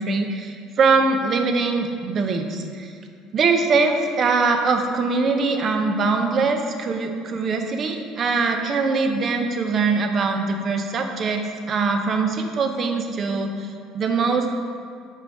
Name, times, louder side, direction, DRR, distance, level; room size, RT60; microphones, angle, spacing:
voice 1, 0.0-2.9 3.3-14.5, right 4 dB, 40° right, 5 dB, 0.7 m, -22 dB
5.5 x 5.3 x 4.9 m, 2.3 s
cardioid pair, 120°, 0 cm